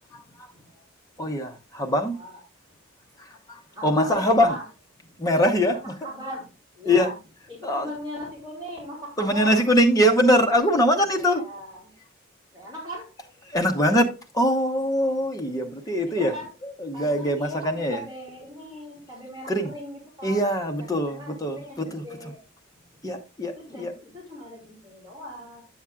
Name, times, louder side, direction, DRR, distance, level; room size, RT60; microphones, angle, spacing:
voice 1, 0.1-0.5 1.2-2.2 3.2-4.6 5.2-6.1 6.8-7.1 7.4-7.9 9.2-11.4 13.2-18.1 19.5-19.8 20.2-22.3 23.0-23.9, equal, 15° left, 0.9 m, -23 dB
voice 2, 3.7-4.6 6.0-6.5 6.7-7.1 7.5-9.6 11.4-11.8 12.5-13.1 16.1-16.5 16.9-17.6 17.9-20.4 20.9-22.4 23.6-25.6, equal, 20° right, 3.0 m, -39 dB
9.5 x 7.1 x 2.4 m
head